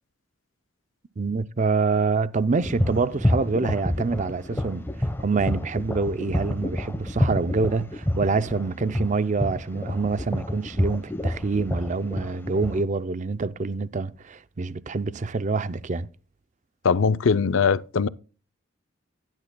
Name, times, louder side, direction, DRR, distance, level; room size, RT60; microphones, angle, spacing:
voice 1, 1.2-16.1, right 4 dB, 40° right, 0.5 m, -26 dB
sound 1, 2.5-12.8, left 1 dB, 10° left, 1.0 m, -28 dB
voice 2, 16.8-18.1, left 5 dB, 75° left, 0.5 m, -21 dB
15.5 x 10.5 x 2.2 m
head